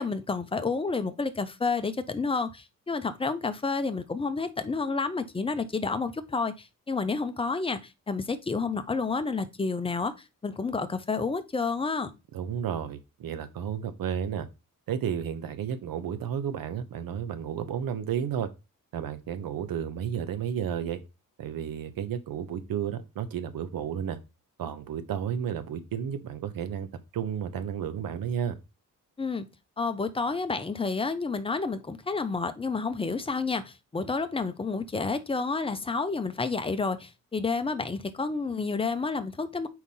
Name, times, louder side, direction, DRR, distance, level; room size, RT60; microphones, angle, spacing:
voice 1, 0.0-10.1 10.4-12.1 29.2-29.5 29.8-39.7, left 4 dB, 15° left, 0.6 m, -30 dB
voice 2, 12.3-14.5 14.9-18.5 18.9-21.0 21.4-24.2 24.6-28.6, right 8 dB, 90° right, 0.9 m, -32 dB
4.7 x 4.2 x 5.4 m
wide cardioid pair, 155°, 34 cm